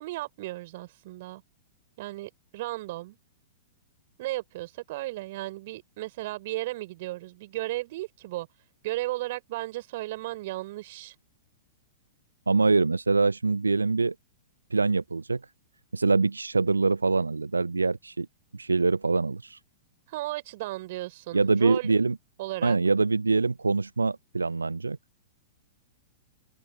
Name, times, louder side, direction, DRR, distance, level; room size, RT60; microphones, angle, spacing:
voice 1, 0.0-1.4 2.0-3.2 4.2-8.5 8.8-11.1 20.1-21.9 22.4-22.8, right 18 dB, 50° right, 4.0 m, -35 dB
voice 2, 12.5-14.1 14.7-15.4 15.9-18.3 18.5-19.6 21.3-22.2 22.6-25.0, right 3 dB, 80° right, 0.4 m, -24 dB
figure-of-eight pair, 105°, 0 cm